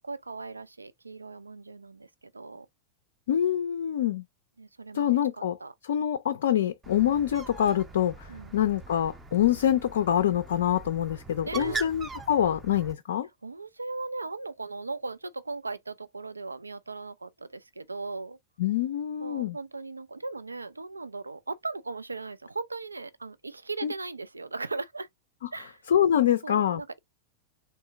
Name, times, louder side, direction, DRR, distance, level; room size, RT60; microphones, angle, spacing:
voice 1, 0.0-2.7 4.6-5.7 8.3-8.5 11.5-11.9 13.4-18.4 19.2-25.1 25.5-25.8 26.4-27.0, right 3 dB, 80° right, 0.3 m, -38 dB
voice 2, 3.3-4.2 4.9-5.6 5.8-13.3 18.6-19.6 23.8-23.9 25.9-26.8, left 10 dB, 60° left, 0.4 m, -25 dB
Bird, 6.8-12.9, right 4 dB, 15° right, 0.5 m, -41 dB
3.5 x 2.6 x 2.6 m
figure-of-eight pair, 90°, 0 cm